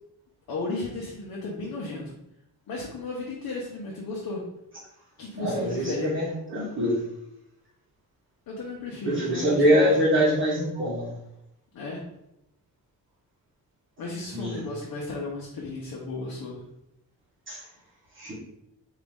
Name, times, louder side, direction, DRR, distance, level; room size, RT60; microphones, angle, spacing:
voice 1, 0.5-2.2 2.7-4.4 5.2-6.1 8.5-9.6 10.0-10.3 11.7-12.0 14.0-16.6, left 2 dB, 65° left, -3 dB, 0.9 m, -34 dB
voice 2, 5.3-7.0 9.1-11.1 14.3-14.7 17.5-17.6 18.1-18.3, equal, 30° right, -7 dB, 1.4 m, -24 dB
4.1 x 2.8 x 3.6 m, 0.83 s
cardioid pair, 115°, 38 cm